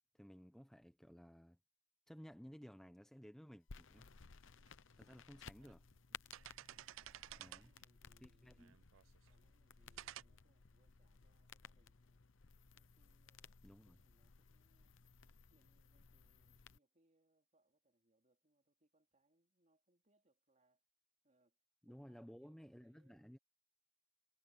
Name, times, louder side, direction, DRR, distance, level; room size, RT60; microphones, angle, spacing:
voice 1, 0.1-1.6 2.1-4.1 5.0-5.8 7.4-7.7 8.2-8.8 13.6-14.0 21.8-23.4, equal, ahead, 0.7 m, -57 dB
sound 1, 3.7-16.8, left 6 dB, 75° left, 0.8 m, -60 dB
sound 2, 4.7-4.8 5.4-5.8 6.1-7.8 8.6-9.3 10.0-10.2, right 13 dB, 80° right, 0.4 m, -53 dB
voice 2, 7.0-8.7 9.3-12.2 12.7-15.0 15.5-20.8 21.2-23.3, right 1 dB, 40° right, 3.1 m, -79 dB
head